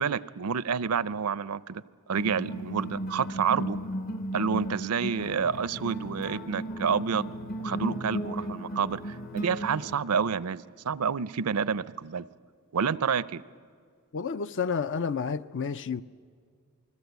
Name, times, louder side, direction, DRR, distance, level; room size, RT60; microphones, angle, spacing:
voice 1, 0.0-1.8 2.1-3.8 4.3-7.3 7.6-12.3 12.7-13.4, right 6 dB, 80° right, 0.5 m, -29 dB
sound 1, 2.2-10.0, equal, 40° left, 1.1 m, -35 dB
voice 2, 14.1-16.0, left 5 dB, 55° left, 0.6 m, -30 dB
28.0 x 20.5 x 8.2 m
head